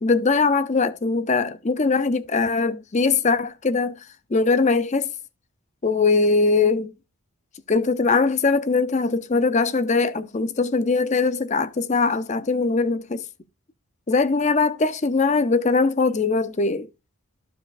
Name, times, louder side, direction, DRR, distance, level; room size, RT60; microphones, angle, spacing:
voice 1, 0.0-4.0 4.3-5.1 5.8-6.9 7.7-13.2 14.1-16.9, left 4 dB, 30° left, 0.5 m, -21 dB
14.0 x 4.9 x 2.5 m
head